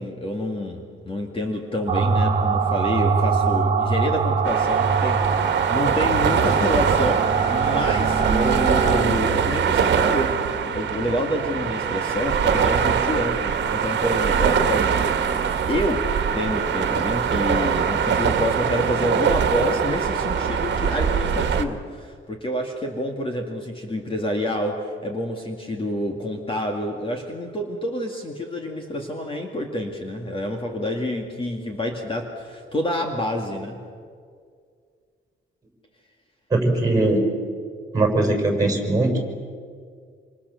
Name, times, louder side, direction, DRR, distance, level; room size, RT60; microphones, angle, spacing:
voice 1, 0.0-16.1 16.3-33.8, left 1 dB, 25° left, 2 dB, 2.3 m, -28 dB
sound 1, 1.9-9.0, right 5 dB, 35° right, 2.5 m, -23 dB
sound 2, 4.4-21.6, right 7 dB, 60° right, 1.8 m, -23 dB
voice 2, 36.5-37.3 37.9-39.1, right 2 dB, 15° right, 2 dB, 6.1 m, -20 dB
27.0 x 27.0 x 7.1 m, 2.1 s
wide cardioid pair, 150°, 21 cm